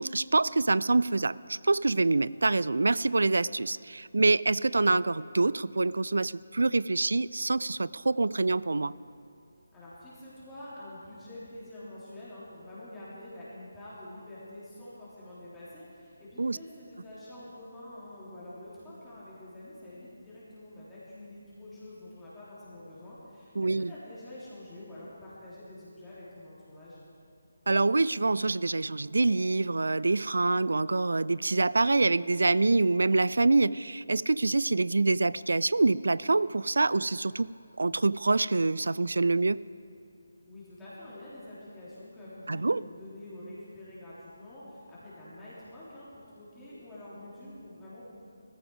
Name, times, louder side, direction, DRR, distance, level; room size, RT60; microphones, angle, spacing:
voice 1, 0.0-8.9 16.4-16.6 23.6-23.9 27.7-37.5 37.8-39.6 42.5-42.8, right 3 dB, 60° right, 19 dB, 0.3 m, -26 dB
voice 2, 9.7-27.0 40.5-48.1, left 1 dB, 10° left, -11 dB, 3.5 m, -47 dB
18.5 x 14.5 x 4.9 m, 2.5 s
figure-of-eight pair, 150°, 0 cm